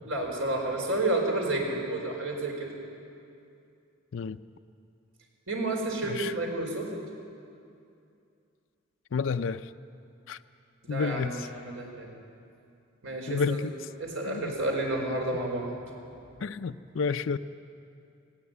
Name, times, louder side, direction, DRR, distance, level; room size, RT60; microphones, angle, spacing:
voice 1, 0.0-2.7 5.5-6.9 10.8-12.1 13.0-13.6 14.0-15.8, right 2 dB, 85° right, 0 dB, 4.7 m, -30 dB
voice 2, 9.1-9.7 10.3-10.4 10.9-11.5 13.3-13.7 14.2-14.4 16.4-17.4, left 5 dB, 70° left, 10 dB, 0.5 m, -30 dB
19.5 x 16.0 x 9.1 m, 2.5 s
head